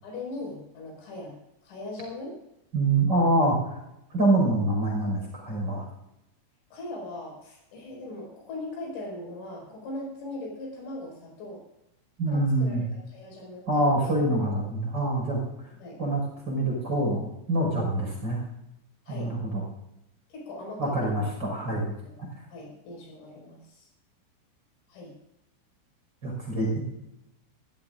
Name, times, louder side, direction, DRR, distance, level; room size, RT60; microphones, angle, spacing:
voice 1, 0.0-1.4 1.6-2.4 6.7-11.6 12.3-14.1 15.8-16.0 19.1-19.3 20.3-21.0 22.0-22.2 22.5-23.9 24.9-25.2, left 2 dB, 75° left, -2 dB, 8.0 m, -39 dB
voice 2, 2.7-3.8 4.1-5.8 12.2-12.8 13.7-15.4 16.0-18.4 19.1-19.6 20.8-21.9 26.2-26.9, right 1 dB, 20° right, -2 dB, 5.6 m, -25 dB
24.5 x 15.5 x 2.6 m, 0.86 s
omnidirectional pair, 5.7 m